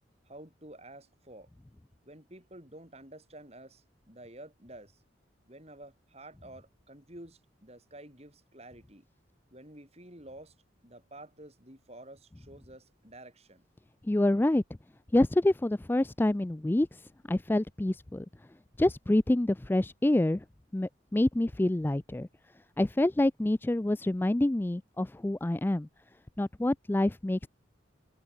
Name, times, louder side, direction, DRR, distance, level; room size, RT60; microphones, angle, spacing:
voice 1, 0.2-1.5 2.0-5.0 5.5-9.0 9.5-10.5 10.8-13.6, right 1 dB, 35° right, 6.7 m, -50 dB
voice 2, 14.1-14.6 15.1-17.0 17.3-18.3 18.8-20.4 20.7-22.3 22.8-25.9 26.4-27.5, left 1 dB, 10° left, 0.3 m, -27 dB
head